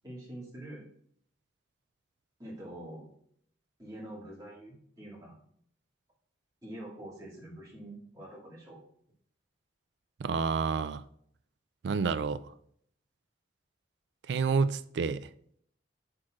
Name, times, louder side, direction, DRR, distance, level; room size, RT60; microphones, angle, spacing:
voice 1, 0.0-0.8 2.4-3.1 3.8-5.4 6.6-8.8, right 1 dB, 20° right, 2.2 m, -45 dB
voice 2, 10.2-11.0 11.8-12.4 14.3-15.3, right 5 dB, 65° right, 0.4 m, -29 dB
7.6 x 6.2 x 2.4 m
head